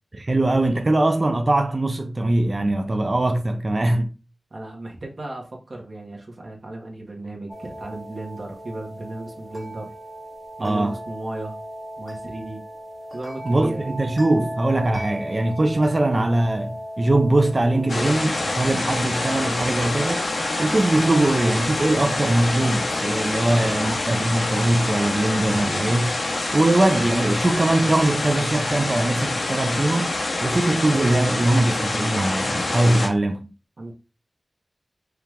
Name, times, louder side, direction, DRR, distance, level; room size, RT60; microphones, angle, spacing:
voice 1, 0.1-4.1 10.6-11.0 13.5-20.3 20.6-26.2 26.5-30.1 30.4-33.5, right 2 dB, 45° right, 0.5 m, -21 dB
voice 2, 4.5-9.9 10.6-11.6 12.0-12.6 13.1-14.0 23.4-23.7 33.8-33.9, right 2 dB, 65° right, 1.1 m, -35 dB
sound 1, 7.5-25.0, equal, 10° left, 0.7 m, -38 dB
sound 2, 17.9-33.1, left 2 dB, 75° left, 0.8 m, -26 dB
4.7 x 2.4 x 3.3 m
wide cardioid pair, 55°, 0 cm